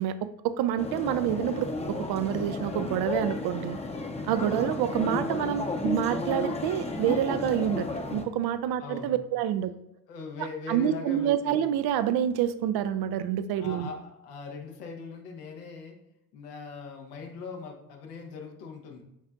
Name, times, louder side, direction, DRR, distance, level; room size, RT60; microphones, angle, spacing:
voice 1, 0.0-3.8 4.3-9.7 10.7-13.9, right 10 dB, 50° right, 12 dB, 0.6 m, -28 dB
sound 1, 0.8-8.3, left 2 dB, 15° left, 0.8 m, -33 dB
voice 2, 4.3-4.7 8.8-9.2 10.1-11.6 13.6-16.0 16.3-19.0, left 4 dB, 75° left, 2 dB, 1.2 m, -40 dB
8.8 x 4.3 x 2.4 m, 0.83 s
hypercardioid pair, 55°, 48 cm